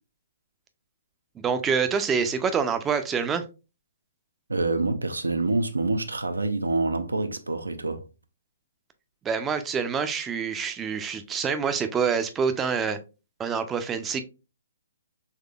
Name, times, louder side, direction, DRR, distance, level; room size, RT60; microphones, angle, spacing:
voice 1, 1.4-3.4 9.2-13.0 13.4-14.2, right 6 dB, 15° right, 0.4 m, -26 dB
voice 2, 4.5-8.0, right 2 dB, 85° right, 0.5 m, -26 dB
3.6 x 3.2 x 2.3 m
figure-of-eight pair, 130°, 0 cm